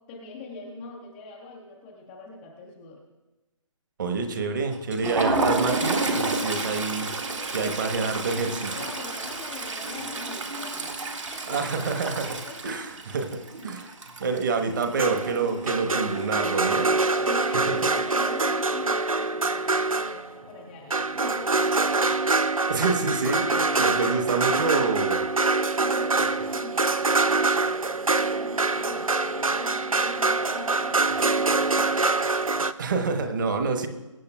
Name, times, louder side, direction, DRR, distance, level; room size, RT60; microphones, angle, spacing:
voice 1, 0.1-3.0 7.6-11.7 12.2-12.6 17.1-22.2 25.6-32.2, left 3 dB, 5° left, -6 dB, 0.3 m, -43 dB
voice 2, 4.0-7.1 7.5-8.7 11.5-12.3 12.6-13.9 14.2-17.0 17.7-17.8 22.7-25.2 32.8-33.9, right 4 dB, 35° right, 5 dB, 1.2 m, -27 dB
Toilet flush, 4.7-15.5 15.8-16.0 16.3-16.5 17.4-18.0, right 2 dB, 65° right, 1.8 m, -30 dB
sound 1, 15.0-20.4 20.9-32.7, right 3 dB, 85° right, 0.6 m, -25 dB
22.0 x 8.5 x 2.3 m, 1.1 s
figure-of-eight pair, 145°, 17 cm